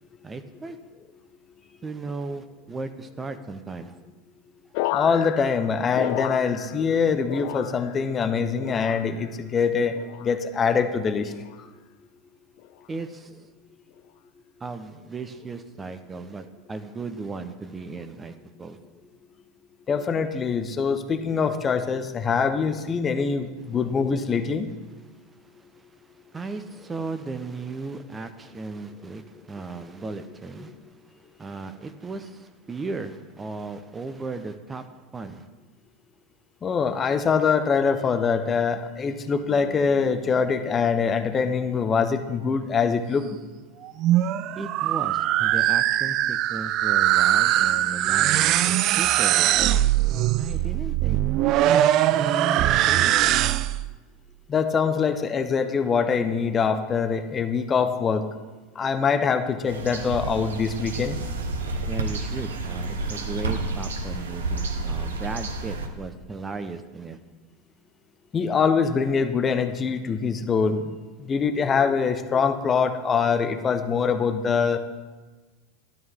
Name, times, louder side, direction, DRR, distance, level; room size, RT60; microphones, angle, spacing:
voice 1, 0.2-0.8 1.8-4.0 12.9-13.4 14.6-18.8 25.4-35.5 44.5-49.7 50.4-51.2 51.5-53.4 61.9-67.2, right 3 dB, 20° right, 10 dB, 0.8 m, -36 dB
sound 1, 4.7-7.0 7.2-8.1 8.6-9.3 9.9-10.4 11.3-11.6 12.6-12.9, left 16 dB, 55° left, 0.4 m, -33 dB
voice 2, 4.9-11.3 19.9-24.7 36.6-43.2 54.5-58.3 58.8-61.2 68.3-70.9 71.2-74.8, left 5 dB, 25° left, 9 dB, 0.9 m, -24 dB
sound 2, 43.8-53.9, right 13 dB, 45° right, 0.4 m, -21 dB
sound 3, 59.7-65.9, right 2 dB, 75° right, 1.2 m, -30 dB
12.5 x 12.5 x 3.7 m, 1.3 s
figure-of-eight pair, 80°, 0 cm